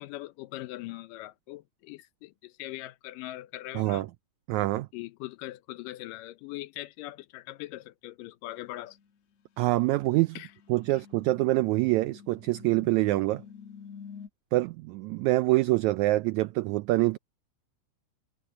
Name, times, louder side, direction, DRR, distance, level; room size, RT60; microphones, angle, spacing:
voice 1, 0.0-4.1 4.9-9.0 10.4-10.5 10.9-11.0, left 17 dB, 80° left, 2.3 m, -41 dB
voice 2, 3.7-4.1 4.5-4.9 9.6-10.4 10.7-13.4 14.5-17.2, right 18 dB, 90° right, 1.6 m, -25 dB
sound 1, 8.9-9.1 10.0-14.3, left 7 dB, 60° left, 2.2 m, -48 dB
omnidirectional pair, 3.9 m